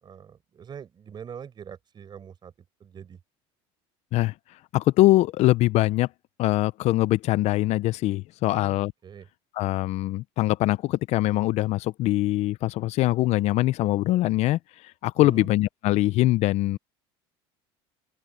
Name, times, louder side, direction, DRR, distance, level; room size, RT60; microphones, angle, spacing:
voice 1, 0.0-2.5 2.8-3.2 8.4-9.3 15.2-15.5, right 7 dB, 35° right, 6.0 m, -43 dB
voice 2, 4.7-6.1 6.4-8.9 9.6-16.8, left 17 dB, 55° left, 0.6 m, -23 dB
open air
supercardioid pair, 105°, 13 cm